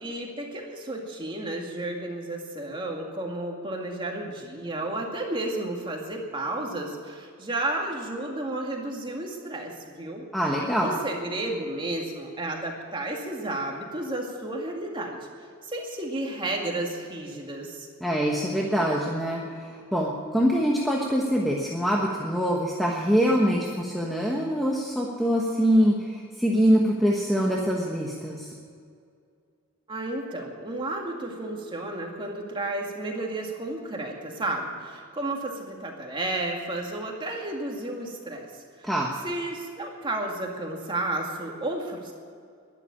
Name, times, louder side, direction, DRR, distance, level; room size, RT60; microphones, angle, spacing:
voice 1, 0.0-10.2 10.8-15.2 15.6-17.9 29.9-38.9 39.2-42.1, right 2 dB, 25° right, 0 dB, 2.2 m, -32 dB
voice 2, 10.3-11.0 18.0-28.5 38.8-39.1, equal, ahead, -2 dB, 1.2 m, -24 dB
11.5 x 11.5 x 8.7 m, 2.2 s
head